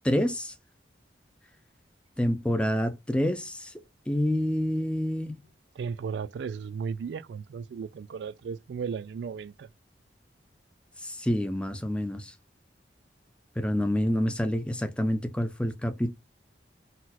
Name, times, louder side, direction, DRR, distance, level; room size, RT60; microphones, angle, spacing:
voice 1, 0.0-0.5 2.2-3.7 4.1-5.4 11.0-12.3 13.6-16.1, equal, 5° left, 0.5 m, -27 dB
voice 2, 5.8-9.7, right 6 dB, 75° right, 0.3 m, -35 dB
4.0 x 2.4 x 4.1 m
head